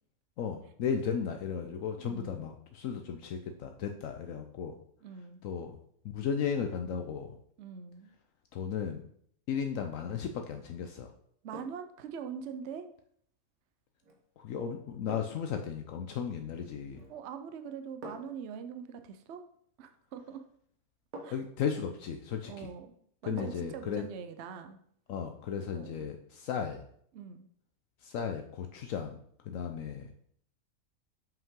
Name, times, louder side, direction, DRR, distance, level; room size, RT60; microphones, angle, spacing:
voice 1, 0.4-4.8 5.4-5.8 6.1-7.4 8.5-9.0 9.5-11.1 14.4-17.1 21.3-22.7 23.2-24.1 25.1-26.9 28.0-29.1 29.5-30.1, left 7 dB, 75° left, 5 dB, 1.0 m, -35 dB
voice 2, 2.0-2.5 5.0-5.4 7.6-8.1 11.4-12.8 17.1-19.4 19.8-20.4 21.2-21.4 22.4-23.0 23.2-24.8 25.7-26.1 27.1-27.5, right 7 dB, 60° right, 8 dB, 0.9 m, -43 dB
sound 1, 9.9-10.3 11.5-11.9 14.0-14.2 15.1-15.5 16.9-17.3 18.0-18.5 20.1-20.2 21.1-21.6 23.4-23.8 24.2-24.3, right 1 dB, 80° right, 1.6 m, -47 dB
7.3 x 5.5 x 3.7 m, 0.65 s
omnidirectional pair, 1.5 m